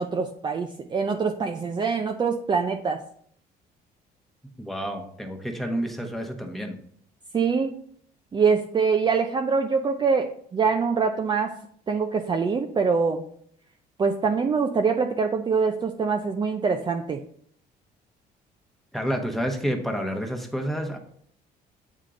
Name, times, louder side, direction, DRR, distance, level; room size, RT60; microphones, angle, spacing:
voice 1, 0.0-3.0 7.3-7.7 8.3-11.6 11.9-13.2 14.0-17.2, right 5 dB, 25° right, 4 dB, 0.5 m, -24 dB
voice 2, 4.6-6.8 18.9-21.0, equal, ahead, 2 dB, 1.0 m, -29 dB
8.3 x 3.7 x 3.8 m, 0.64 s
cardioid pair, 110°, 17 cm